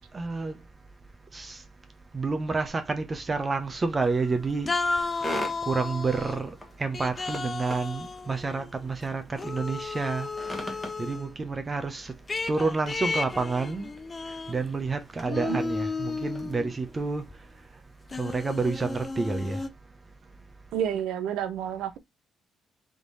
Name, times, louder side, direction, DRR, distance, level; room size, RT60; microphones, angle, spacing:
voice 1, 0.1-0.6 1.3-1.6 2.1-4.7 5.6-12.1 12.5-13.9 14.5-17.3 18.1-19.6, right 4 dB, 30° right, 0.8 m, -29 dB
sound 1, 3.5-17.3, equal, 10° left, 1.3 m, -44 dB
sound 2, 4.0-4.3 4.7-6.4 6.9-8.9 9.4-11.3 12.3-14.9 15.2-16.8 17.3-17.4 18.1-19.7, left 4 dB, 30° left, 0.5 m, -33 dB
voice 2, 20.7-22.0, right 9 dB, 85° right, 0.7 m, -30 dB
3.7 x 3.0 x 3.9 m
cardioid pair, 90°, 0 cm